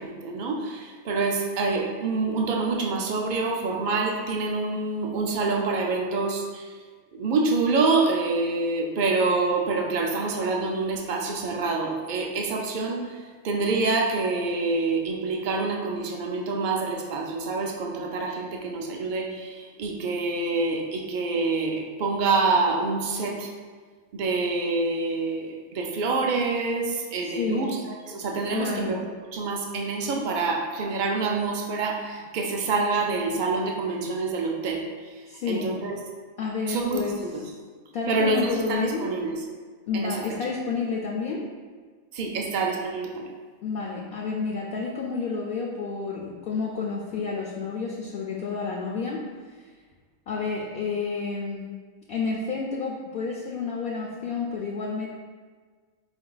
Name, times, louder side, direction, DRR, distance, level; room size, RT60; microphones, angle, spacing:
voice 1, 0.0-6.8 7.1-13.2 13.4-23.5 24.1-29.0 29.3-35.9 36.7-37.4 38.1-39.4 39.9-40.2 42.1-43.3, right 3 dB, 80° right, 0 dB, 0.4 m, -26 dB
voice 2, 27.4-27.7 28.5-28.9 35.3-35.8 36.4-37.2 37.9-39.1 39.9-41.4 43.6-49.6 50.3-51.7 52.1-55.1, left 4 dB, 70° left, -2 dB, 0.5 m, -30 dB
4.4 x 2.6 x 3.8 m, 1.5 s
omnidirectional pair, 1.5 m